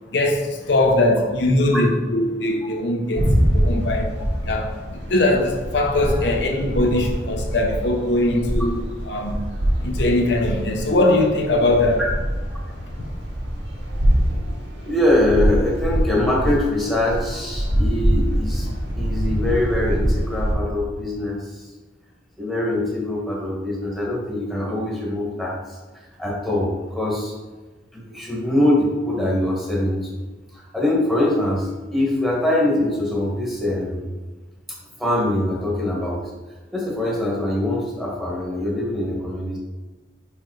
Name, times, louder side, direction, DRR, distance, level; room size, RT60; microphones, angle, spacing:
voice 1, 0.1-4.2 4.4-9.4 9.8-12.0 12.9-13.0, left 1 dB, 70° left, 0.8 m, -21 dB
sound 1, 3.2-20.5, equal, 80° right, 2.0 m, -24 dB
voice 2, 14.8-18.7 19.0-21.7 22.4-25.8 26.2-27.3 27.9-30.1 30.5-34.0 35.0-36.3 36.7-39.6, left 1 dB, ahead, 1.3 m, -23 dB
5.2 x 4.8 x 4.7 m
head